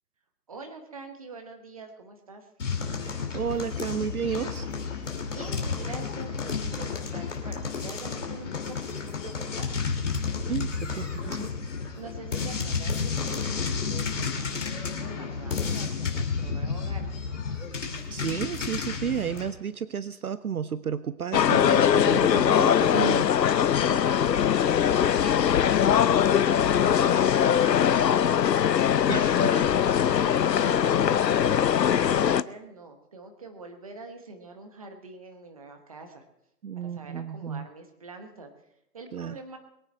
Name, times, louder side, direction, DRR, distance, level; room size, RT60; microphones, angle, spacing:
voice 1, 0.5-2.5 5.2-9.8 11.9-17.1 23.8-26.0 26.4-28.7 29.4-36.2 36.8-38.5 38.9-39.6, right 3 dB, 20° right, 5 dB, 1.1 m, -45 dB
sound 1, 2.6-19.5, left 5 dB, 45° left, 2.7 m, -31 dB
voice 2, 3.3-4.7 10.5-11.5 18.1-23.3 29.1-29.5 36.6-37.7 39.1-39.4, right 8 dB, 60° right, 15 dB, 0.6 m, -32 dB
sound 2, 21.3-32.4, left 9 dB, 85° left, 0.7 m, -21 dB
22.5 x 9.1 x 4.5 m, 0.81 s
hypercardioid pair, 165°, 49 cm